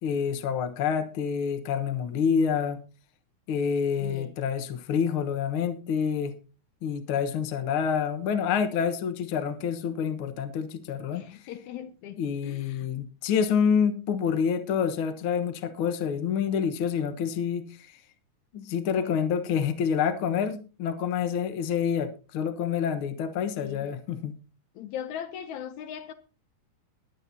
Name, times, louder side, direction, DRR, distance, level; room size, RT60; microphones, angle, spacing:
voice 1, 0.0-2.8 3.5-6.3 6.8-11.2 12.2-18.0 18.5-24.3, left 7 dB, 55° left, 1.6 m, -27 dB
voice 2, 4.0-4.3 11.1-12.2 12.4-12.9 23.6-23.9 24.8-26.1, left 9 dB, 75° left, 2.0 m, -39 dB
21.0 x 8.5 x 2.8 m
omnidirectional pair, 3.6 m